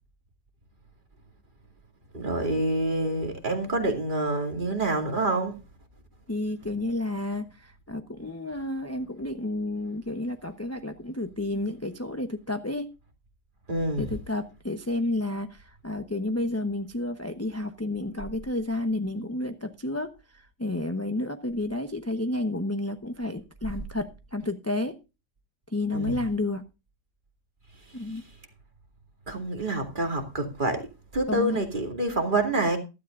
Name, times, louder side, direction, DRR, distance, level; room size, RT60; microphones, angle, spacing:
voice 1, 2.1-5.6 13.7-14.1 25.9-26.2 29.3-30.8 31.1-32.8, right 2 dB, 30° right, 2.7 m, -27 dB
voice 2, 6.3-12.9 14.0-25.0 25.7-26.6 27.9-28.2 31.3-31.6, left 2 dB, 15° left, 0.6 m, -31 dB
15.0 x 13.0 x 2.5 m
omnidirectional pair, 1.8 m